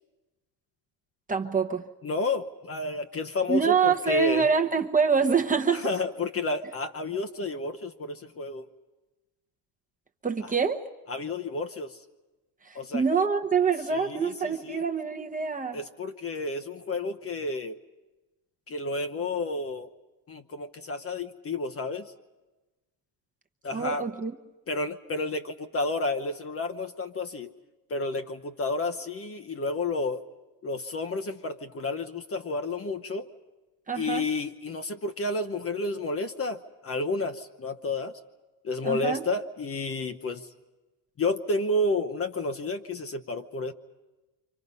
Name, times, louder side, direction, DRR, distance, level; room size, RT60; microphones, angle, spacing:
voice 1, 1.3-1.9 3.5-5.9 10.2-10.8 12.6-15.8 23.7-24.3 33.9-34.3 38.8-39.2, right 5 dB, 15° right, 4 dB, 1.0 m, -25 dB
voice 2, 2.0-4.5 5.7-8.7 11.1-12.0 12.7-13.0 13.9-14.8 15.7-17.8 18.7-19.9 20.3-22.1 23.6-24.1 24.7-27.5 27.9-30.2 30.6-33.3 34.0-38.2 38.6-40.5 41.2-43.7, left 2 dB, 30° left, 8 dB, 0.9 m, -31 dB
29.0 x 25.5 x 5.5 m, 1.1 s
cardioid pair, 120°, 47 cm